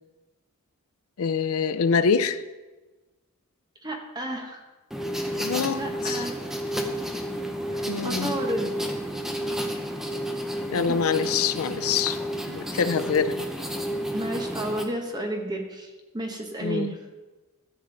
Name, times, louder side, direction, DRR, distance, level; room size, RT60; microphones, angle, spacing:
voice 1, 1.2-2.4 5.4-5.8 6.0-6.2 7.9-8.3 10.7-12.2 12.5-13.3 16.6-17.0, left 6 dB, 65° left, 12 dB, 0.5 m, -25 dB
voice 2, 3.8-4.6 5.7-6.3 7.7-8.9 10.9-11.0 14.1-17.0, right 1 dB, 20° right, 2 dB, 1.1 m, -32 dB
sound 1, 4.9-14.9, equal, ahead, 0.8 m, -31 dB
13.5 x 6.6 x 3.9 m, 1.2 s
head